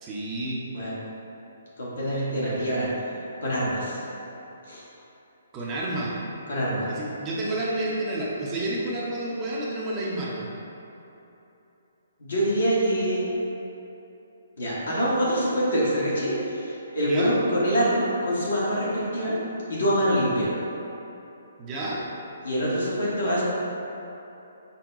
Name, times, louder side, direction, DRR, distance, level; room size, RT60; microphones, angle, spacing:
voice 1, 0.0-0.6 5.5-6.1 6.9-10.5 17.1-17.3 21.6-22.0, right 1 dB, 25° right, -6 dB, 0.7 m, -30 dB
voice 2, 1.8-3.1 3.4-4.0 4.7-4.8 6.5-6.9 12.2-13.2 14.6-19.4 19.7-20.5 22.4-23.4, equal, 65° left, -7 dB, 1.3 m, -25 dB
5.4 x 2.2 x 3.6 m, 3.0 s
figure-of-eight pair, 130°, 0 cm